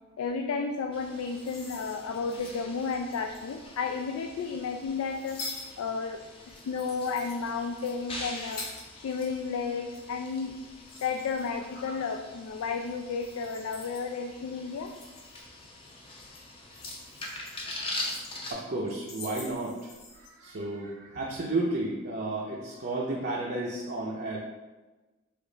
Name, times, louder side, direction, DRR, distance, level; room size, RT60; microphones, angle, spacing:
voice 1, 0.2-5.4 5.8-6.2 6.5-8.6 9.0-10.5 11.0-14.9, left 5 dB, 80° left, 4 dB, 0.3 m, -32 dB
sound 1, 0.9-18.5, left 2 dB, 25° left, 0.5 m, -43 dB
sound 2, 1.1-3.7 4.3-9.3 9.6-12.1 12.5-12.8 13.2-14.1 14.6-15.9 16.2-18.5 18.9-20.3, left 3 dB, 50° left, 1.5 m, -46 dB
voice 2, 18.5-24.4, right 2 dB, 45° right, -4 dB, 0.5 m, -32 dB
5.0 x 2.4 x 3.8 m, 1.2 s
head